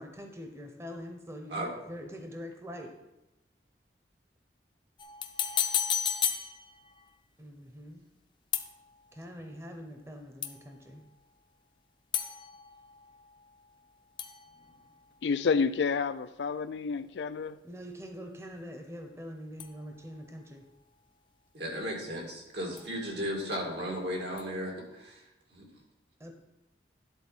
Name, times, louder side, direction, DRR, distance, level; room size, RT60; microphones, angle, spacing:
voice 1, 0.0-2.9 7.4-8.0 9.1-11.0 17.6-20.6 26.2-26.4, equal, 15° right, 0.7 m, -44 dB
sound 1, 5.0-7.1 8.5-9.2 10.4-10.9 12.1-13.9 14.2-15.4 19.6-20.3 22.8-23.4 24.4-24.5, left 8 dB, 25° left, 0.5 m, -35 dB
voice 2, 15.2-17.6, left 5 dB, 80° left, 0.4 m, -29 dB
voice 3, 21.5-25.2 25.5-25.6, equal, 75° right, 2.2 m, -35 dB
11.0 x 4.1 x 5.5 m
head